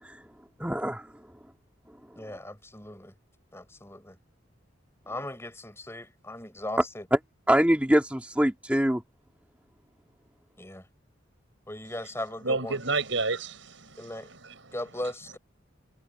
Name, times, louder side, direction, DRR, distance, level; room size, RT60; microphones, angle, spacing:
voice 1, 0.6-1.1 7.5-9.0, equal, 5° right, 1.8 m, -24 dB
voice 2, 2.2-3.1 3.5-4.2 5.1-7.1 10.6-10.9 11.7-12.8 14.0-14.3 14.7-15.4, left 1 dB, 15° left, 5.8 m, -38 dB
voice 3, 12.4-14.8, right 3 dB, 75° right, 5.3 m, -31 dB
head